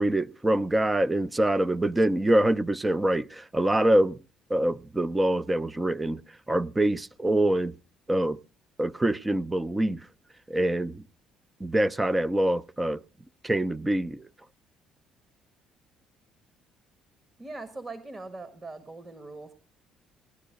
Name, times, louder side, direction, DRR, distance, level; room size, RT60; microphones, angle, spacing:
voice 1, 0.0-4.2 4.5-6.2 6.5-7.7 8.1-8.4 8.8-10.0 10.5-11.0 11.6-13.0 13.4-14.2, right 1 dB, 15° right, 0.6 m, -25 dB
voice 2, 17.4-19.5, right 3 dB, 35° right, 1.7 m, -41 dB
18.0 x 11.0 x 3.7 m
hypercardioid pair, 55°, 0 cm